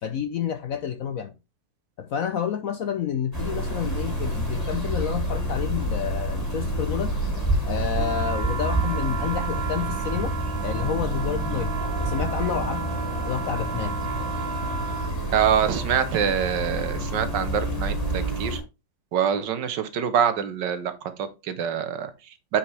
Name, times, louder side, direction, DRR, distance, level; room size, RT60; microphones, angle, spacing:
voice 1, 0.0-1.3 2.0-7.2 7.6-10.3 10.6-12.9 13.3-13.9, left 8 dB, 65° left, 9 dB, 0.9 m, -29 dB
sound 1, 3.3-18.6, right 1 dB, 10° left, 3.0 m, -28 dB
sound 2, 7.9-15.2, right 5 dB, 30° right, 1.7 m, -34 dB
voice 2, 15.3-18.6 19.1-22.6, right 8 dB, 70° right, 11 dB, 1.5 m, -25 dB
8.7 x 5.3 x 3.3 m, 0.26 s
omnidirectional pair, 2.0 m